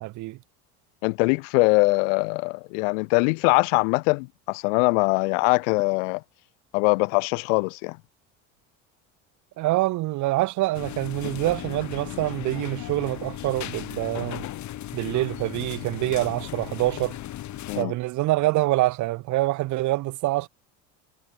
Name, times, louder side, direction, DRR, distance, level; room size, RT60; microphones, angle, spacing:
voice 1, 0.0-0.4 9.6-14.5 14.9-17.2 17.8-20.5, right 18 dB, 55° right, 0.7 m, -25 dB
voice 2, 1.0-6.2 6.7-8.0 17.7-17.9, left 33 dB, 80° left, 1.2 m, -22 dB
sound 1, 10.7-17.8, left 13 dB, 50° left, 1.6 m, -36 dB
supercardioid pair, 85°, 37 cm